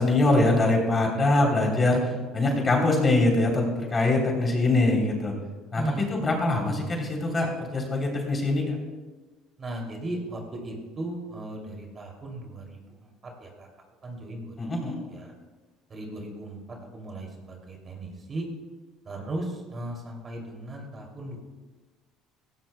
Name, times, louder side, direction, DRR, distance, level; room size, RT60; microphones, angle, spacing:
voice 1, 0.0-5.3 5.7-8.8 14.6-15.0, left 2 dB, 25° left, 1 dB, 3.4 m, -23 dB
voice 2, 5.7-6.1 9.6-13.7 14.0-14.5 15.1-15.3 15.9-18.5 19.0-21.4, right 1 dB, 30° right, 1 dB, 2.8 m, -37 dB
17.0 x 16.0 x 2.3 m, 1.3 s
cardioid pair, 115°, 0 cm